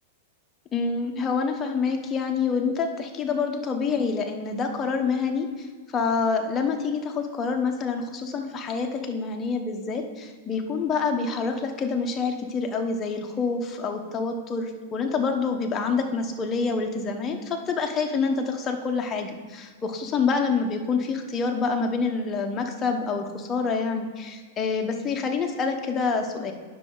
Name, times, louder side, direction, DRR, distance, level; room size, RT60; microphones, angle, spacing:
voice 1, 0.7-5.5 5.9-26.5, left 4 dB, 25° left, 3 dB, 1.0 m, -27 dB
9.7 x 6.2 x 3.9 m, 1.5 s
hypercardioid pair, 135°, 0 cm